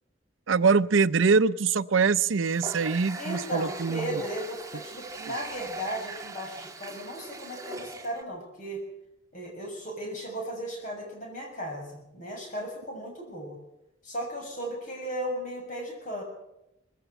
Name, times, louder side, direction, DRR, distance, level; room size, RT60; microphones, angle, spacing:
voice 1, 0.5-4.2, right 5 dB, 85° right, 15 dB, 0.6 m, -23 dB
Water tap faucet, 2.4-8.2, right 3 dB, 15° right, 1.6 m, -40 dB
voice 2, 3.2-8.8 9.3-13.6 14.0-16.2, right 1 dB, 40° left, 1 dB, 6.8 m, -36 dB
20.5 x 16.0 x 8.0 m, 0.88 s
head